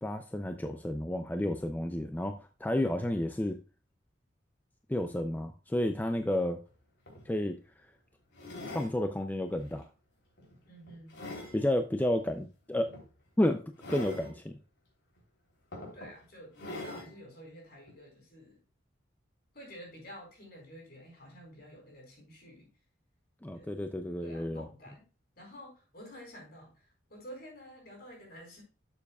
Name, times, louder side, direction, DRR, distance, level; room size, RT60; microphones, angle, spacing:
voice 1, 0.0-3.6 4.9-6.6 7.3-7.6 8.7-9.8 11.5-12.9 13.4-13.6 13.9-14.6 23.4-24.7, left 1 dB, 10° left, 7 dB, 0.4 m, -31 dB
sound 1, 6.7-6.8 7.1-7.3 8.3-8.9 9.6-9.8 10.4-11.6 12.9-13.1 13.8-14.3 15.2-15.3 15.7-16.1 16.6-17.1 17.9-18.0, left 2 dB, 70° left, 3.3 m, -43 dB
voice 2, 10.7-11.2 15.9-18.6 19.5-22.7 23.5-23.7 24.2-25.1 25.4-28.6, equal, 55° left, 0 dB, 4.5 m, -50 dB
11.5 x 7.0 x 2.3 m, 0.34 s
head